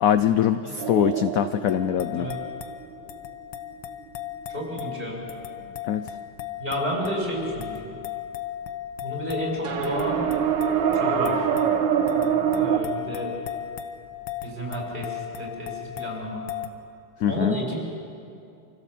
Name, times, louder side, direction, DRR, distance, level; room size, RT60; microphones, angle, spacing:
voice 1, 0.0-2.3 5.8-6.1 17.2-17.6, left 9 dB, 70° left, 11 dB, 0.8 m, -23 dB
sound 1, 0.8-3.2 9.6-12.8, right 8 dB, 75° right, 1.8 m, -24 dB
sound 2, 1.7-16.7, left 11 dB, 85° left, 1.8 m, -37 dB
voice 2, 4.5-5.2 6.6-8.0 9.0-10.2 10.9-11.5 12.5-13.3 14.4-16.4 17.3-17.8, equal, 25° right, -1 dB, 5.3 m, -31 dB
26.5 x 16.0 x 7.4 m, 2.5 s
omnidirectional pair, 2.1 m